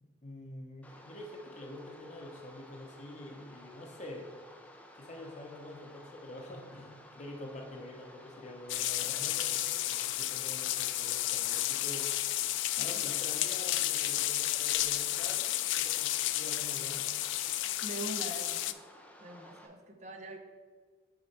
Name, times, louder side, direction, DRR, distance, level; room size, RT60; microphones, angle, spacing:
voice 1, 0.0-4.3 4.9-12.3 12.8-17.0, left 1 dB, 40° left, 1 dB, 0.8 m, -46 dB
sound 1, 0.8-19.7, left 1 dB, 10° left, 0.5 m, -55 dB
sound 2, 8.7-18.7, left 14 dB, 90° left, 0.3 m, -32 dB
voice 2, 17.8-18.7 19.2-20.4, right 1 dB, 40° right, 4 dB, 0.7 m, -43 dB
6.5 x 4.2 x 4.2 m, 1.5 s
head